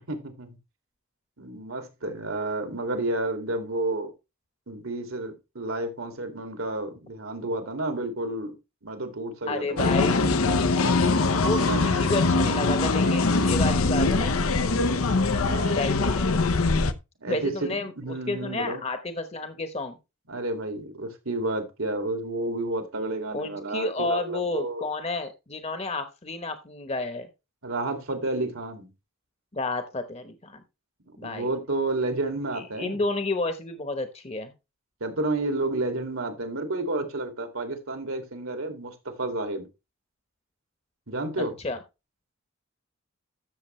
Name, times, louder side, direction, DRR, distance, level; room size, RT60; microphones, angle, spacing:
voice 1, 0.1-0.6 1.4-4.1 4.7-8.6 8.8-10.4 11.6-11.8 15.4-15.8 17.2-18.8 20.3-24.8 27.6-28.9 31.2-33.0 35.0-39.7 41.1-41.5, right 2 dB, 80° right, 2.4 m, -31 dB
voice 2, 9.5-10.2 11.4-14.6 15.7-16.3 17.3-17.9 18.3-20.0 23.3-27.3 29.5-30.6 31.2-31.5 32.5-34.5 41.4-41.8, left 2 dB, 30° left, 1.0 m, -31 dB
sound 1, 9.8-16.9, left 3 dB, 90° left, 0.8 m, -22 dB
13.0 x 7.0 x 3.2 m
head